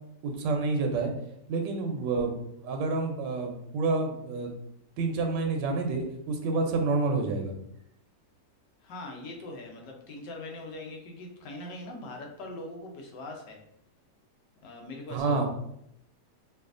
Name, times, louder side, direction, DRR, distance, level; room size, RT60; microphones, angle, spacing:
voice 1, 0.2-1.1 1.5-4.5 5.0-7.5 15.1-15.5, right 3 dB, 85° right, 3 dB, 1.3 m, -28 dB
voice 2, 8.8-13.6 14.6-15.5, left 2 dB, 85° left, 1 dB, 1.4 m, -41 dB
4.9 x 2.3 x 2.5 m, 0.75 s
omnidirectional pair, 1.8 m